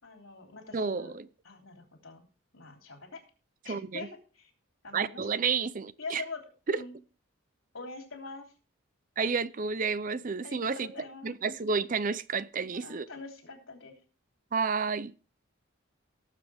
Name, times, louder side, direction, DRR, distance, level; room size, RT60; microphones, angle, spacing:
voice 1, 0.0-1.2 1.4-2.2 2.5-3.2 3.6-4.5 4.8-5.3 6.0-6.4 6.7-6.9 7.7-8.5 10.4-11.4 12.7-13.9, left 3 dB, 75° left, 3 dB, 3.3 m, -44 dB
voice 2, 0.7-1.3 3.7-4.1 4.9-6.2 6.7-6.8 9.2-10.9 11.2-13.1 14.5-15.1, right 5 dB, 40° right, 16 dB, 0.5 m, -30 dB
18.0 x 7.5 x 3.5 m, 0.35 s
head